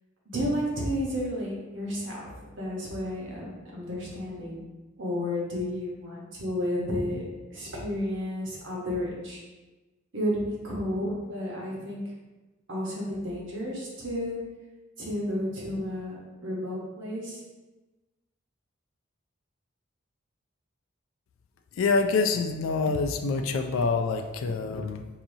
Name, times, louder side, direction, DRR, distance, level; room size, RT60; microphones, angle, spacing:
voice 1, 0.2-2.2 2.6-4.6 5.0-7.2 7.5-9.4 10.1-12.0 12.7-14.4 15.0-17.4, equal, 65° right, -3 dB, 1.1 m, -32 dB
voice 2, 21.7-25.1, left 4 dB, 90° left, 5 dB, 0.3 m, -26 dB
4.8 x 2.7 x 2.7 m, 1.2 s
head